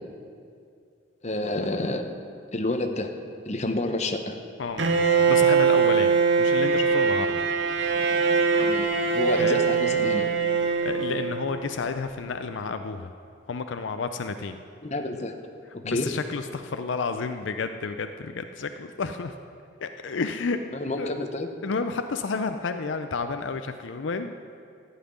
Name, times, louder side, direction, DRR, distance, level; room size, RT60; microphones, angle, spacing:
voice 1, 1.2-2.1 2.5-3.1 3.4-4.4 8.6-8.9 9.1-10.3 14.8-15.3 15.8-16.1 20.7-21.5, left 2 dB, 35° left, 5 dB, 0.9 m, -29 dB
Bowed string instrument, 4.8-11.7, right 5 dB, 70° right, 0.9 m, -22 dB
voice 2, 5.3-7.4 9.4-9.6 10.8-13.1 13.5-14.6 15.8-19.4 19.8-20.6 21.0-21.2 21.6-24.3, left 4 dB, 75° left, 8 dB, 0.5 m, -31 dB
14.0 x 5.7 x 9.5 m, 2.4 s
head